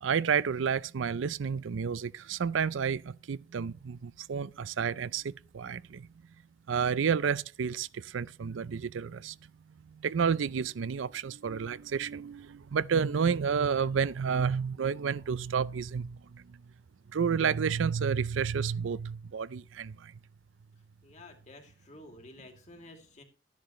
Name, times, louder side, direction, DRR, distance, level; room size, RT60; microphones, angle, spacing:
voice 1, 0.0-6.1 6.7-9.4 9.8-16.6 17.1-20.1, right 6 dB, 80° right, 0.5 m, -30 dB
voice 2, 21.0-23.2, left 2 dB, 40° left, 2.5 m, -51 dB
13.0 x 10.5 x 3.1 m
head